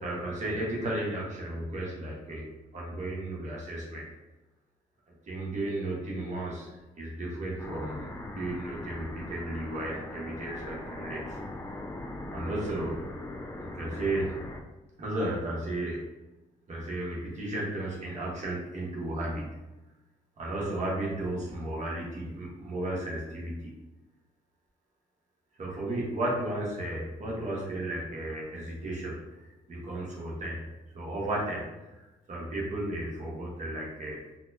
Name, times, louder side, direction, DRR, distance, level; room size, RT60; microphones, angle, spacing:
voice 1, 0.0-2.4 2.7-4.0 5.3-6.7 7.0-11.2 12.3-12.9 13.6-14.3 15.0-16.0 16.7-19.4 20.4-23.5 25.6-30.6 30.9-31.6 31.9-32.0 32.3-34.2, right 1 dB, 50° right, -4 dB, 1.2 m, -34 dB
sound 1, 7.6-14.6, left 2 dB, 15° left, 0.4 m, -40 dB
4.1 x 2.2 x 2.7 m, 1.1 s
cardioid pair, 105°, 16 cm